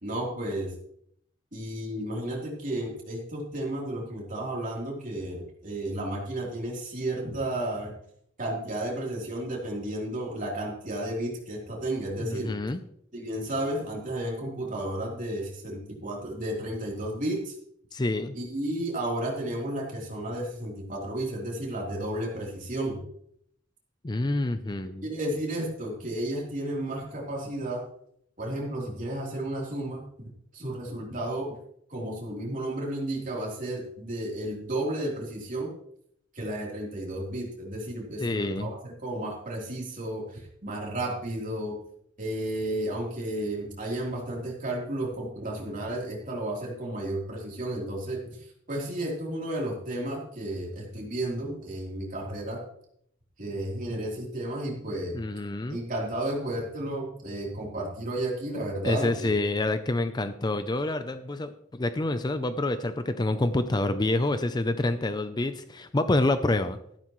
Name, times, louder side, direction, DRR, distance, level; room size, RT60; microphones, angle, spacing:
voice 1, 0.0-0.7 1.5-7.9 8.4-12.5 13.1-17.5 18.3-23.0 25.0-27.9 28.4-31.5 31.9-35.7 36.3-41.8 42.2-52.6 53.4-55.2 55.7-59.3, right 1 dB, 45° right, -2 dB, 3.5 m, -33 dB
voice 2, 12.2-12.8 17.9-18.4 24.0-25.1 38.2-38.7 55.1-55.8 58.8-66.8, left 2 dB, 20° left, 10 dB, 0.5 m, -27 dB
13.5 x 12.0 x 3.1 m, 0.70 s
head